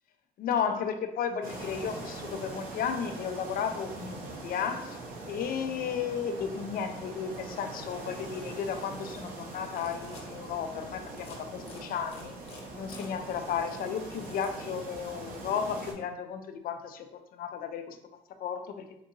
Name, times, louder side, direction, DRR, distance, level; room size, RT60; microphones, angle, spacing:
voice 1, 0.4-5.0 5.3-12.3 12.7-17.1 17.3-18.0 18.4-18.6, left 7 dB, 60° left, 7 dB, 0.4 m, -34 dB
sound 1, 1.4-15.9, right 2 dB, 55° right, 0.8 m, -42 dB
sound 2, 9.6-10.3 11.1-11.4 11.7-14.7, left 3 dB, 35° left, 0.9 m, -50 dB
3.6 x 2.8 x 2.5 m, 0.79 s
cardioid pair, 110°, 17 cm